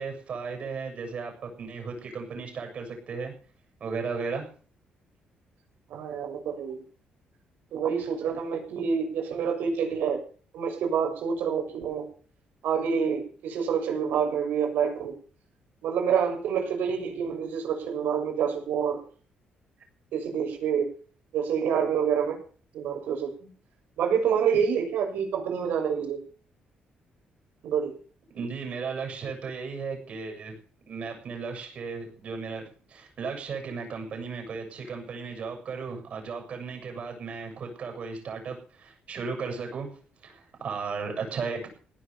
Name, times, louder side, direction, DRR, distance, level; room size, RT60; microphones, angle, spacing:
voice 1, 0.0-3.3 3.8-4.5 28.3-30.5 30.9-39.9 40.2-41.7, right 5 dB, 45° right, 4 dB, 7.6 m, -35 dB
voice 2, 5.9-6.8 7.7-10.2 10.5-12.1 12.6-15.1 15.8-19.0 20.1-20.9 21.3-22.4 22.7-23.5 24.0-26.2 27.6-27.9, right 7 dB, 85° right, 3 dB, 6.5 m, -27 dB
17.5 x 10.5 x 7.0 m, 0.42 s
cardioid pair, 155°, 3 cm